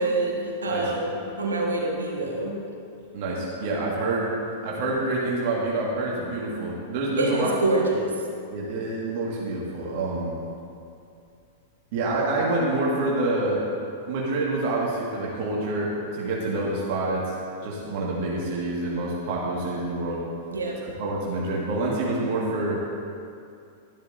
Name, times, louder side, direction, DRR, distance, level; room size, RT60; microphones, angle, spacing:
voice 1, 0.0-2.5 7.2-8.1 20.5-20.8, right 2 dB, 75° right, -2 dB, 1.6 m, -26 dB
voice 2, 3.1-4.3 4.6-7.5 8.5-10.4 11.9-13.6 14.1-17.3 17.6-20.2 20.8-22.8, right 2 dB, 50° right, -4 dB, 1.9 m, -27 dB
12.5 x 12.0 x 2.7 m, 2.5 s
figure-of-eight pair, 95°, 0 cm